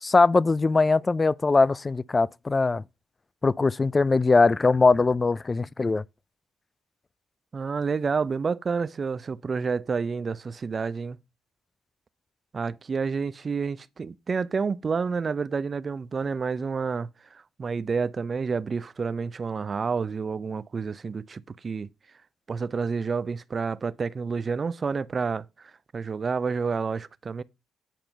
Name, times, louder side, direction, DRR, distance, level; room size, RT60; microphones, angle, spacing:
voice 1, 0.0-2.8 3.4-6.0, left 3 dB, 30° left, 0.3 m, -21 dB
voice 2, 7.5-11.2 12.5-21.9 22.5-27.4, right 5 dB, 40° right, 0.5 m, -29 dB
9.1 x 4.4 x 5.2 m
supercardioid pair, 65°, 0 cm